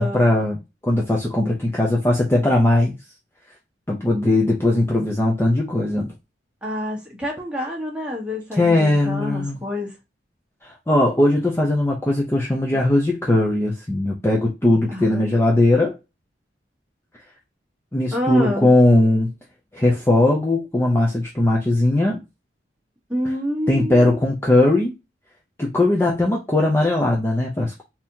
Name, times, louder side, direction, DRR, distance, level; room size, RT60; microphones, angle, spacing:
voice 1, 0.0-2.9 3.9-6.1 8.6-9.6 10.6-16.0 17.9-19.3 19.7-22.2 23.7-24.9 25.6-27.8, left 1 dB, 15° left, 0.6 m, -19 dB
voice 2, 6.6-10.0 14.9-15.3 18.1-18.7 23.1-24.2, left 1 dB, 5° right, 1.2 m, -27 dB
3.9 x 2.8 x 2.7 m
head